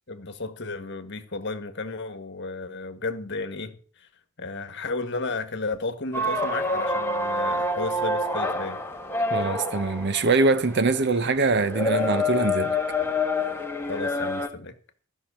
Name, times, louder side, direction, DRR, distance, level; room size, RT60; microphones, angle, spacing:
voice 1, 0.1-4.1 4.4-8.8 13.9-14.8, left 3 dB, 50° left, 1.6 m, -33 dB
sound 1, 6.1-14.5, left 2 dB, 10° left, 1.3 m, -27 dB
voice 2, 9.3-12.8, right 3 dB, 50° right, 0.8 m, -23 dB
14.5 x 5.9 x 8.2 m
head